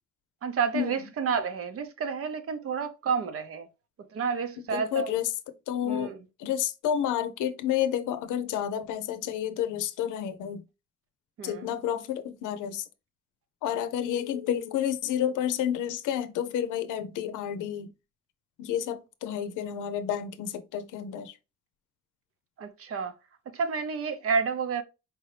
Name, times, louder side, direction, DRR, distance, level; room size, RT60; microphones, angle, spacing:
voice 1, 0.4-3.7 4.1-5.1 5.9-6.2 11.4-11.7 22.6-23.1 23.5-24.8, right 6 dB, 50° right, 0.7 m, -30 dB
voice 2, 4.6-5.3 5.7-6.1 6.4-10.6 11.4-12.9 13.6-17.9 18.6-21.4, left 10 dB, 90° left, 0.6 m, -30 dB
4.7 x 2.7 x 3.2 m
cardioid pair, 115°, 30 cm